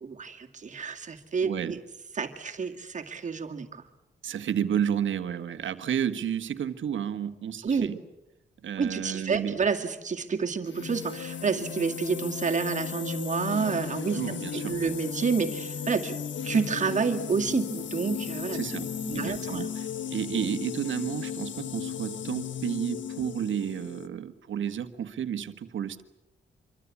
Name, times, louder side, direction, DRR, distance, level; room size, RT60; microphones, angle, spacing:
voice 1, 0.0-1.8 2.1-3.8 7.6-8.0 8.8-16.2 16.4-19.7, right 5 dB, 40° right, 4 dB, 2.3 m, -29 dB
voice 2, 1.4-1.8 4.2-8.0 8.6-9.6 14.1-14.8 18.5-19.8 20.1-26.0, right 8 dB, 85° right, 10 dB, 1.5 m, -31 dB
sound 1, 10.6-24.1, left 8 dB, 75° left, 1.3 m, -35 dB
26.5 x 24.0 x 8.4 m, 0.89 s
wide cardioid pair, 170°, 19 cm